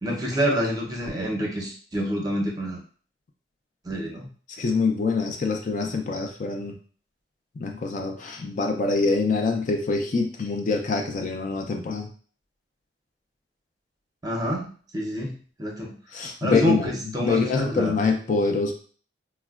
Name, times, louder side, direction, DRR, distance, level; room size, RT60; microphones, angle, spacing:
voice 1, 0.0-2.8 3.8-4.3 14.2-15.3 15.6-15.9 16.4-18.0, equal, 20° right, -1 dB, 0.6 m, -27 dB
voice 2, 4.6-6.7 7.6-12.1 16.1-16.9 17.2-18.7, left 4 dB, 40° left, 3 dB, 0.3 m, -25 dB
4.6 x 2.0 x 2.3 m, 0.43 s
head